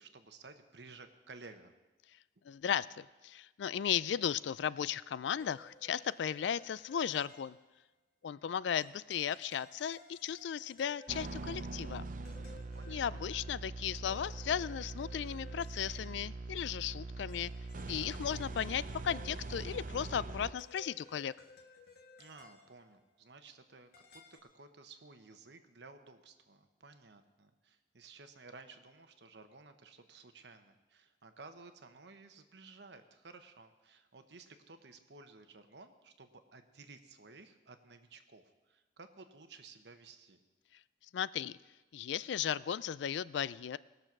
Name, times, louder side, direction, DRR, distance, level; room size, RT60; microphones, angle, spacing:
voice 1, 0.0-1.7 12.7-13.2 22.2-24.2 24.5-40.4, right 3 dB, 70° right, 8 dB, 1.0 m, -55 dB
voice 2, 2.4-7.6 8.2-12.1 12.9-17.5 17.9-21.3 41.1-41.6 41.9-43.8, left 8 dB, 75° left, 19 dB, 0.3 m, -36 dB
sound 1, 5.4-7.9 8.8-11.6 12.2-16.4 17.3-19.9 20.6-23.0 23.9-24.4, left 3 dB, 55° left, 1.6 m, -59 dB
sound 2, 11.1-20.5, right 3 dB, 45° right, 0.6 m, -43 dB
19.5 x 6.7 x 6.0 m, 1.2 s
head